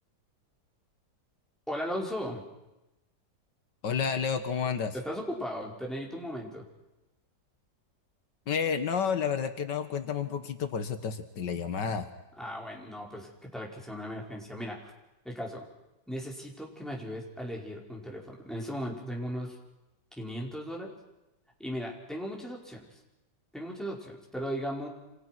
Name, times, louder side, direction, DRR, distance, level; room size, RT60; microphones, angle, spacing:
voice 1, 1.7-2.4 4.9-6.6 12.4-14.9 15.2-15.6 16.1-19.5 20.2-20.9 21.6-22.8 23.5-24.9, equal, ahead, -2 dB, 5.1 m, -37 dB
voice 2, 3.8-4.9 8.5-12.1, left 6 dB, 80° left, 9 dB, 2.1 m, -30 dB
28.5 x 27.0 x 6.2 m, 0.99 s
omnidirectional pair, 1.9 m